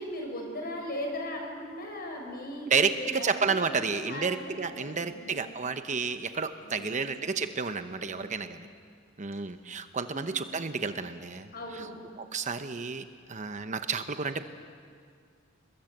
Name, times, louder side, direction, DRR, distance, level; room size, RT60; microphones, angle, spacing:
voice 1, 0.0-5.5 6.6-7.0 8.0-8.4 10.1-10.2 11.5-12.0, left 1 dB, 50° left, 2 dB, 6.2 m, -39 dB
voice 2, 2.7-8.7 9.2-11.5 11.8-11.9 12.3-13.0 13.3-14.4, right 5 dB, 35° right, 9 dB, 0.9 m, -31 dB
29.0 x 21.5 x 8.0 m, 2.2 s
head